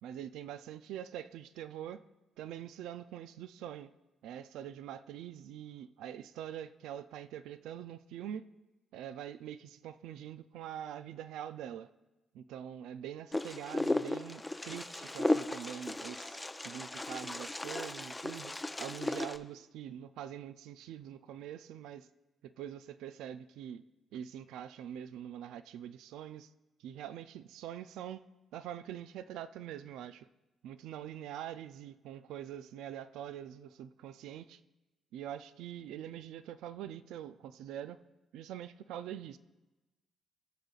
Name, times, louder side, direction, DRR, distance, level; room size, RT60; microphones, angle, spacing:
voice 1, 0.0-2.0 2.4-3.9 4.2-8.4 8.9-11.9 12.3-22.1 22.4-23.8 24.1-26.5 26.8-28.2 28.5-30.3 30.6-34.6 35.1-38.0 38.3-39.4, right 10 dB, 90° right, 0.3 m, -44 dB
Wind, 13.3-19.4, left 2 dB, 15° left, 0.5 m, -35 dB
19.5 x 6.6 x 2.4 m
cardioid pair, 90°, 0 cm